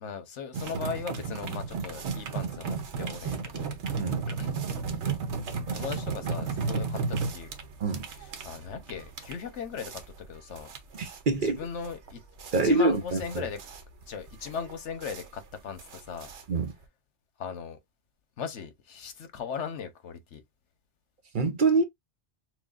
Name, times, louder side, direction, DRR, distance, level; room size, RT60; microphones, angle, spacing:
voice 1, 0.0-3.8 4.4-4.6 5.7-7.5 8.4-10.0 10.3-10.7 11.4-12.2 12.6-13.6 14.1-16.3 17.4-17.8 18.4-20.4, left 6 dB, 85° left, 1.2 m, -38 dB
sound 1, 0.5-16.8, right 5 dB, 75° right, 1.1 m, -34 dB
voice 2, 10.9-11.6 12.5-13.5 16.5-16.7 21.3-21.8, right 3 dB, 50° right, 0.7 m, -25 dB
6.2 x 2.3 x 2.4 m
omnidirectional pair, 1.2 m